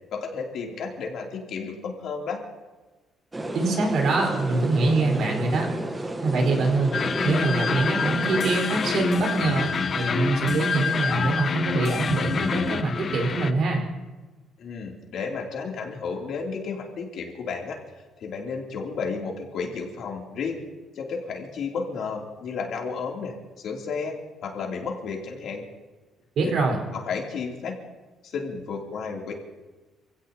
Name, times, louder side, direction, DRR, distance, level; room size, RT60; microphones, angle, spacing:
voice 1, 0.1-2.4 14.6-17.8 18.2-20.6 20.9-24.1 24.4-25.6 26.4-26.5 26.9-27.8 28.2-29.3, left 5 dB, 55° left, 0 dB, 3.0 m, -32 dB
sound 1, 3.3-8.6, right 1 dB, 10° right, 1.1 m, -31 dB
voice 2, 3.5-5.7 6.2-6.9 7.2-13.8 26.4-26.8, right 3 dB, 55° right, 1 dB, 4.4 m, -24 dB
sound 2, 6.9-13.5, left 5 dB, 35° left, 0.7 m, -27 dB
27.5 x 17.0 x 2.9 m, 1.2 s
cardioid pair, 160°, 0 cm